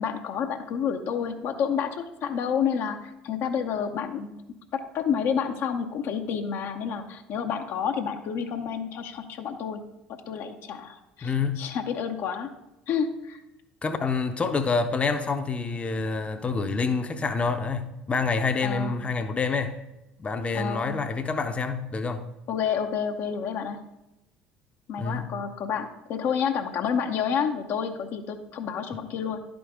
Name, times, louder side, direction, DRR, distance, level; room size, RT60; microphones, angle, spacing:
voice 1, 0.0-4.3 4.7-9.8 10.3-12.5 12.9-13.4 18.6-18.9 20.5-20.9 22.5-23.8 24.9-29.4, left 7 dB, 55° left, 0.7 m, -29 dB
voice 2, 11.2-11.6 13.8-19.8 20.2-22.2 25.0-25.3, left 4 dB, 25° left, 0.7 m, -27 dB
11.0 x 5.1 x 3.5 m
hypercardioid pair, 65°, 5 cm